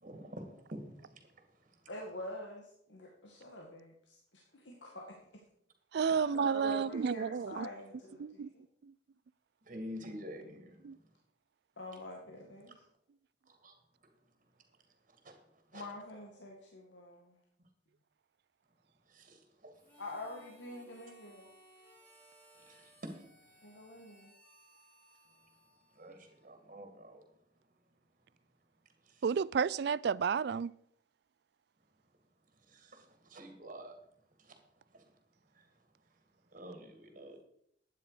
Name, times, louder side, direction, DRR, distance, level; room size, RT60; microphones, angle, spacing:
voice 1, 0.0-1.4 6.0-6.2 6.5-6.8 9.7-10.8 13.5-13.7 15.2-15.4 15.7-15.9 19.1-19.8 22.5-23.2 26.0-27.2 29.1-29.2 32.7-33.9 34.4-34.6 34.9-35.0 35.5-35.6 36.5-37.4, equal, 45° right, 2.3 m, -48 dB
voice 2, 1.9-4.2 4.5-5.2 6.2-8.6 11.8-12.8 15.7-17.4 20.0-21.5 23.6-24.3, left 1 dB, 85° left, 1.9 m, -46 dB
voice 3, 5.9-7.7 8.2-8.5 8.8-8.9 10.8-11.0 29.2-30.7, right 6 dB, 60° right, 0.3 m, -31 dB
Harmonica, 19.7-26.7, equal, 10° left, 3.7 m, -63 dB
12.0 x 9.6 x 5.0 m
head